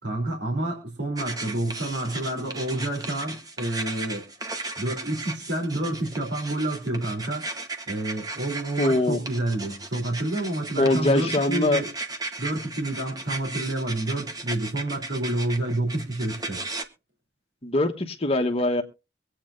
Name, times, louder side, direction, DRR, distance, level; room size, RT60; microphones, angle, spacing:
voice 1, 0.0-4.3 4.8-7.5 7.9-11.9 12.4-16.7, right 1 dB, 75° right, 1 dB, 3.3 m, -29 dB
sound 1, 1.2-16.8, right 3 dB, 20° right, 1.2 m, -36 dB
voice 2, 8.8-9.2 10.8-11.8 17.6-18.8, left 2 dB, 35° left, 5 dB, 1.2 m, -22 dB
23.5 x 8.8 x 2.6 m, 0.29 s
head